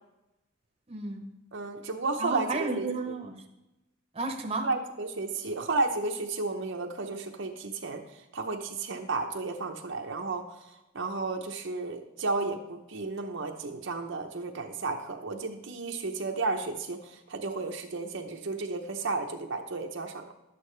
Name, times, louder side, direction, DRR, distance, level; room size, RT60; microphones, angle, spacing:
voice 1, 0.9-1.3 2.2-3.5 4.1-4.7, right 3 dB, 25° right, 3 dB, 0.9 m, -32 dB
voice 2, 1.5-2.9 4.6-20.3, right 3 dB, 60° right, 3 dB, 0.7 m, -33 dB
11.5 x 8.4 x 3.2 m, 0.97 s
head